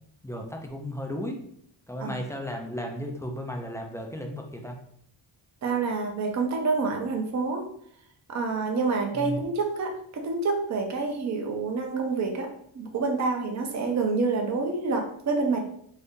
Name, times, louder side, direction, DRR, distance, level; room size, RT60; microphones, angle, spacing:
voice 1, 0.2-1.4 1.9-4.8 9.1-9.4, equal, 5° left, 2 dB, 0.4 m, -34 dB
voice 2, 5.6-7.7 8.3-12.5 12.7-15.6, right 4 dB, 35° right, 2 dB, 0.6 m, -27 dB
2.7 x 2.6 x 3.5 m, 0.66 s
wide cardioid pair, 105°, 48 cm